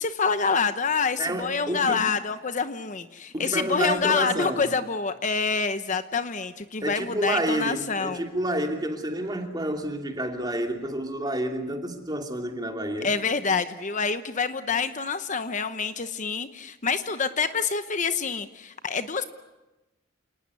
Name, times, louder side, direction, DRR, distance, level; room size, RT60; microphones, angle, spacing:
voice 1, 0.0-8.2 13.0-19.2, left 5 dB, 40° left, 10 dB, 0.9 m, -27 dB
voice 2, 1.2-2.0 3.3-4.7 6.8-13.1, right 1 dB, 20° right, 4 dB, 2.9 m, -29 dB
28.5 x 19.0 x 9.8 m, 1.1 s
head